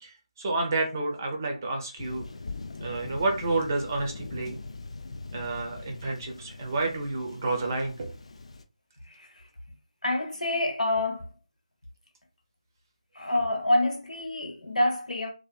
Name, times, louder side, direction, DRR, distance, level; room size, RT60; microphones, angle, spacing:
voice 1, 0.0-2.2 2.8-4.6 5.3-8.1, right 3 dB, 25° right, 0.5 m, -30 dB
Thunder, 2.0-8.6, left 3 dB, 55° left, 0.3 m, -41 dB
voice 2, 9.0-9.4 10.0-11.3 13.1-15.3, left 1 dB, 85° left, 1.0 m, -27 dB
2.7 x 2.4 x 2.3 m
figure-of-eight pair, 165°, 4 cm